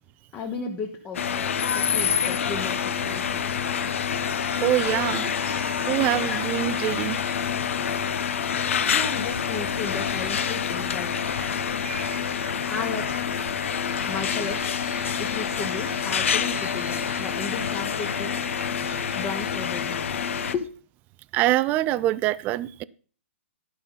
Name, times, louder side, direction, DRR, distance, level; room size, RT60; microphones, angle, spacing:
voice 1, 0.3-3.6 4.9-5.4 6.1-6.5 8.9-11.2 12.7-14.7 15.2-18.4 19.1-20.7, left 5 dB, 20° left, 2 dB, 1.1 m, -35 dB
sound 1, 1.1-20.5, left 7 dB, 75° left, 0.9 m, -27 dB
sound 2, 2.9-20.7, right 7 dB, 75° right, 1.0 m, -45 dB
voice 2, 4.6-5.3 5.9-7.2 21.3-22.8, right 15 dB, 25° right, 19 dB, 0.4 m, -24 dB
11.5 x 5.4 x 5.5 m, 0.41 s
hypercardioid pair, 150°, 7 cm